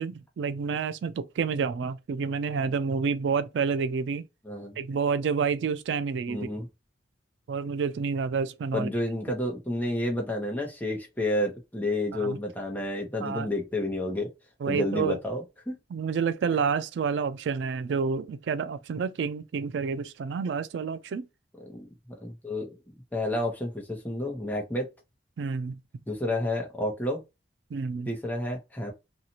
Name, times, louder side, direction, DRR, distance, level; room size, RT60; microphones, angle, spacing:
voice 1, 0.0-4.3 4.8-6.5 7.5-8.9 12.1-12.4 13.2-13.5 14.6-15.2 15.9-21.3 25.4-25.8 27.7-28.1, right 5 dB, 90° right, 0.3 m, -29 dB
voice 2, 4.4-4.8 6.3-6.7 8.7-14.3 14.7-15.8 21.7-22.8 23.1-24.9 26.1-27.2 28.1-28.9, left 1 dB, 10° left, 0.8 m, -30 dB
2.7 x 2.4 x 2.8 m
head